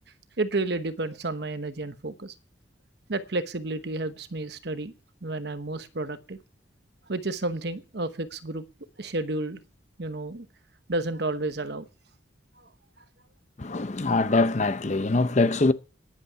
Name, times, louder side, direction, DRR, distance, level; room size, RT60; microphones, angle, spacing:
voice 1, 0.4-2.3 3.1-4.9 5.2-6.4 7.1-8.6 9.0-9.6 10.0-10.5 10.9-11.8 12.6-12.7 14.0-14.1, right 2 dB, 60° right, 1.0 m, -31 dB
voice 2, 13.6-15.7, left 3 dB, 40° left, 0.7 m, -23 dB
10.5 x 8.4 x 9.5 m
head